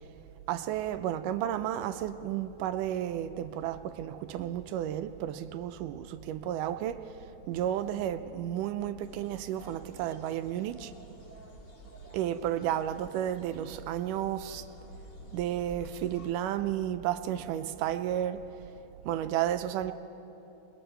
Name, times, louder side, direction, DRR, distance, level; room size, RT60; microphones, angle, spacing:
voice 1, 0.5-7.0 7.5-10.9 12.1-14.6 15.3-18.4 19.1-19.9, right 11 dB, 80° right, 10 dB, 2.0 m, -32 dB
sound 1, 9.0-16.3, left 1 dB, 40° left, 2.0 m, -51 dB
28.0 x 21.5 x 4.5 m, 2.9 s
omnidirectional pair, 4.1 m